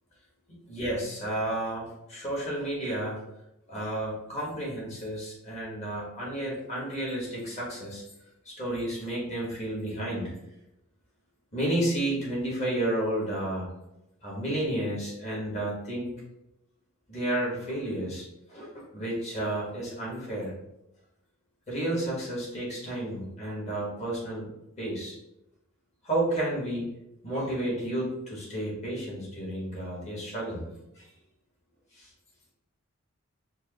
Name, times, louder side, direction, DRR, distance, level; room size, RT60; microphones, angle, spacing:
voice 1, 0.5-3.2 3.7-8.0 8.4-10.3 11.5-13.7 14.2-16.1 17.1-20.5 21.7-24.5 24.8-25.2 26.0-26.9 27.2-30.7 30.9-31.1 31.9-32.1, right 1 dB, 30° left, -5 dB, 1.3 m, -31 dB
4.5 x 2.1 x 2.9 m, 0.86 s
head